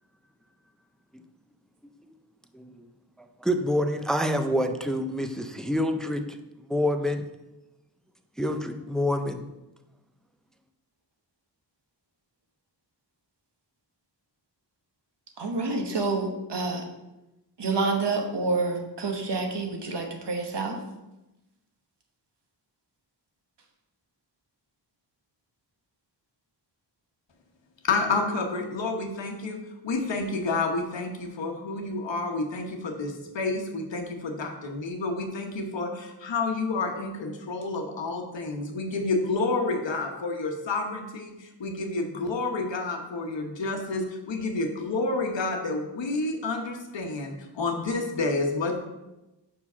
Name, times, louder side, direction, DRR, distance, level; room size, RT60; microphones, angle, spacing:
voice 1, 2.5-2.9 3.2-7.2 8.4-9.4, left 1 dB, ahead, 7 dB, 0.4 m, -27 dB
voice 2, 15.4-16.8 17.6-20.8, right 3 dB, 65° right, 3 dB, 1.2 m, -28 dB
voice 3, 27.8-48.7, left 3 dB, 75° left, 4 dB, 1.1 m, -29 dB
5.6 x 4.8 x 5.5 m, 0.98 s
wide cardioid pair, 125°, 44 cm